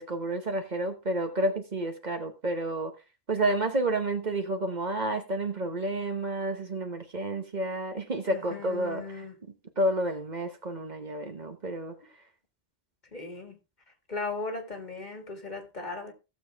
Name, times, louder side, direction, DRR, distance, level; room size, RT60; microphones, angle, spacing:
voice 1, 0.0-2.9 3.3-9.2 9.8-12.0, right 1 dB, 45° right, 1.2 m, -30 dB
voice 2, 8.3-9.4 13.1-13.6 14.1-16.1, left 3 dB, 45° left, 2.1 m, -37 dB
16.0 x 7.0 x 3.4 m
omnidirectional pair, 1.1 m